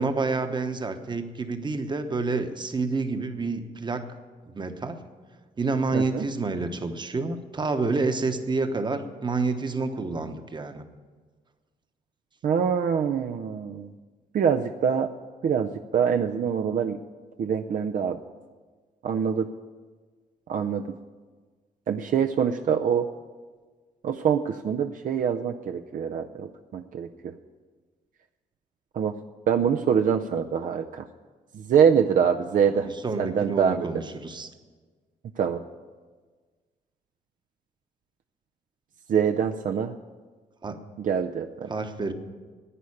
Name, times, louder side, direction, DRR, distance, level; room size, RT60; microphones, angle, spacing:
voice 1, 0.0-4.1 4.5-5.0 5.6-10.8 32.6-34.5 40.6-40.8 41.7-42.1, right 3 dB, 30° right, 7 dB, 1.1 m, -28 dB
voice 2, 5.9-6.3 12.4-13.9 14.3-15.1 15.4-17.0 17.4-18.2 19.0-19.5 20.5-20.8 21.9-23.1 24.0-27.3 28.9-29.1 29.5-31.0 31.5-32.9 33.2-33.9 35.4-35.6 39.1-39.9 41.0-41.7, right 7 dB, 60° right, 5 dB, 0.6 m, -24 dB
11.0 x 9.3 x 8.6 m, 1.4 s
cardioid pair, 115°, 15 cm